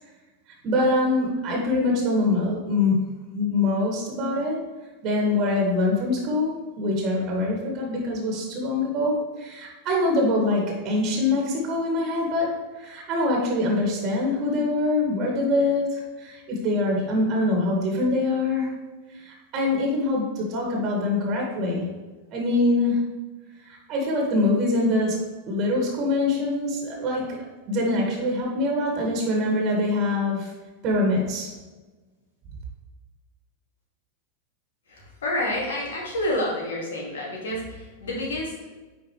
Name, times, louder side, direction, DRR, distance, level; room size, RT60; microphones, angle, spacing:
voice 1, 0.6-3.0 3.3-4.6 5.0-12.5 12.8-18.7 19.2-21.9 22.3-23.1 23.7-25.2 25.5-30.5 30.8-31.5, left 2 dB, 35° right, -1 dB, 2.0 m, -24 dB
voice 2, 34.9-38.7, left 1 dB, 60° left, -3 dB, 2.3 m, -29 dB
9.5 x 4.8 x 3.3 m, 1.2 s
figure-of-eight pair, 90°, 0 cm